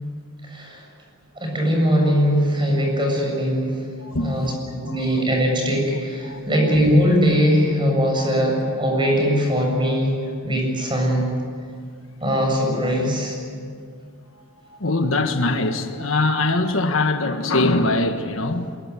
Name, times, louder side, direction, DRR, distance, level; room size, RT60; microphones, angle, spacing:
voice 1, 1.4-3.7 4.2-10.1 10.4-11.2 12.2-13.3, equal, 20° right, 7.1 m, -20 dB
voice 2, 4.0-4.6 4.8-5.2 6.2-6.8 11.1-11.3 14.3-18.8, left 2 dB, 70° left, 1.5 m, -23 dB
23.0 x 22.0 x 9.7 m
head